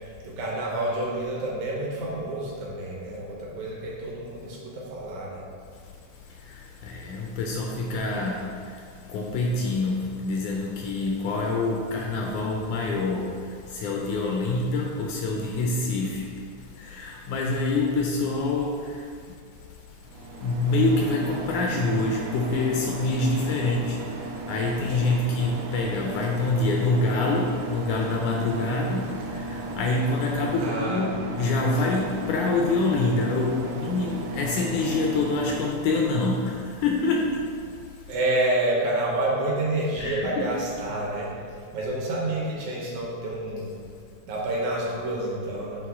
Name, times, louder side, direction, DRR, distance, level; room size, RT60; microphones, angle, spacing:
voice 1, 0.0-5.4 30.6-31.1 38.1-41.3 41.7-43.7 44.3-45.9, right 1 dB, 70° right, -4 dB, 2.2 m, -28 dB
voice 2, 6.8-8.5 9.1-13.3 13.7-16.2 16.8-19.0 20.4-24.0 24.5-36.5 36.8-37.3 40.0-40.5, left 3 dB, 80° left, 0 dB, 1.8 m, -26 dB
sound 1, 20.1-35.7, right 2 dB, 85° right, 1.6 m, -35 dB
7.9 x 3.5 x 3.5 m, 2.2 s
omnidirectional pair, 3.7 m